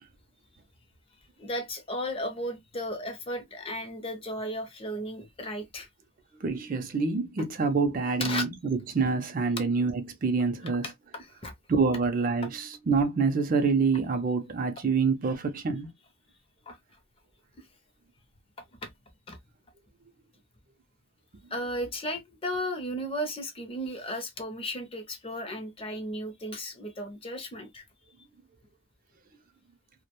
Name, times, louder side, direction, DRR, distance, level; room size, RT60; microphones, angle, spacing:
voice 1, 1.4-5.9 8.2-8.4 10.8-11.5 16.7-16.8 17.6-17.7 18.8-18.9 19.3-19.4 21.5-27.8, equal, 25° left, 0.5 m, -35 dB
voice 2, 6.3-10.9 11.7-15.9, right 4 dB, 40° right, 0.4 m, -26 dB
2.3 x 2.1 x 2.8 m
head